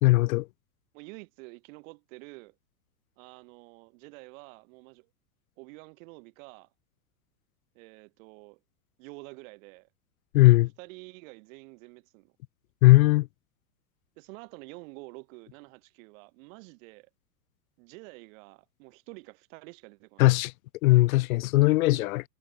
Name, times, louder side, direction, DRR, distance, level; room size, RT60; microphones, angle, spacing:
voice 1, 0.0-0.5 10.3-10.7 12.8-13.3 20.2-20.5 20.8-22.2, left 20 dB, 55° left, 0.7 m, -19 dB
voice 2, 0.9-2.5 3.2-5.1 5.6-6.7 7.7-8.6 9.0-9.9 10.8-12.3 14.2-17.1 17.8-20.3 21.9-22.1, right 27 dB, 50° right, 6.2 m, -48 dB
supercardioid pair, 140°, 50 cm